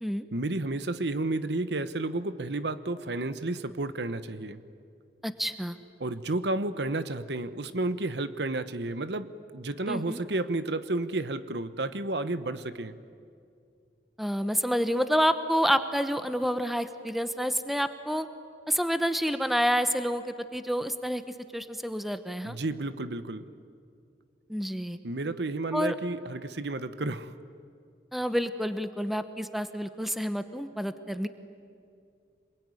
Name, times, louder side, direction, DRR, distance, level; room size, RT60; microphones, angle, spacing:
voice 1, 0.3-4.6 6.0-13.0 22.4-23.5 25.0-27.3, right 2 dB, 70° right, 12 dB, 1.0 m, -31 dB
voice 2, 5.2-5.8 9.9-10.2 14.2-18.3 18.7-21.2 21.5-22.6 24.5-25.0 25.7-26.0 28.1-31.3, equal, ahead, 10 dB, 0.9 m, -28 dB
26.5 x 21.5 x 9.8 m, 2.4 s
head